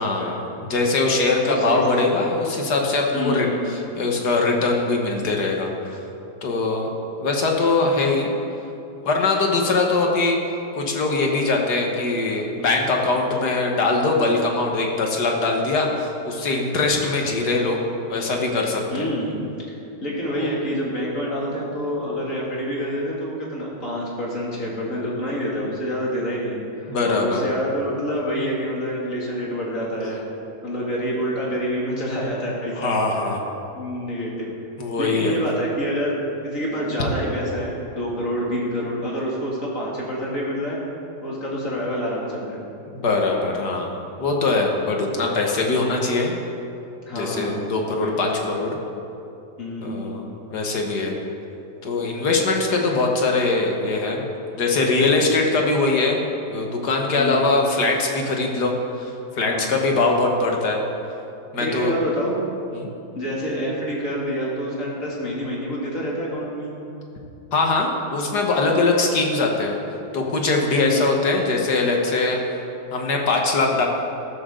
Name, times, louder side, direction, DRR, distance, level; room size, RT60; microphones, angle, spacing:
voice 1, 0.0-6.0 6.4-6.9 7.2-8.3 9.0-10.4 10.8-17.8 18.1-19.1 20.4-20.5 26.9-27.4 32.8-33.4 34.8-35.4 42.9-46.4 47.1-48.3 48.5-48.8 49.8-50.2 50.5-51.2 51.8-54.3 54.6-56.2 56.5-60.8 61.5-61.9 62.7-62.9 67.5-69.8 70.1-72.4 72.9-73.9, left 3 dB, 75° left, 1 dB, 2.0 m, -22 dB
voice 2, 1.4-2.2 3.1-3.6 18.9-19.4 20.0-30.2 30.6-32.9 33.7-34.5 35.0-36.1 36.4-40.8 41.2-42.7 47.1-47.7 48.0-48.4 49.6-50.1 57.1-57.5 59.5-59.8 61.6-62.3 63.1-66.7 70.7-71.1, equal, 50° left, -5 dB, 3.0 m, -27 dB
14.0 x 13.5 x 3.9 m, 2.7 s
omnidirectional pair, 1.8 m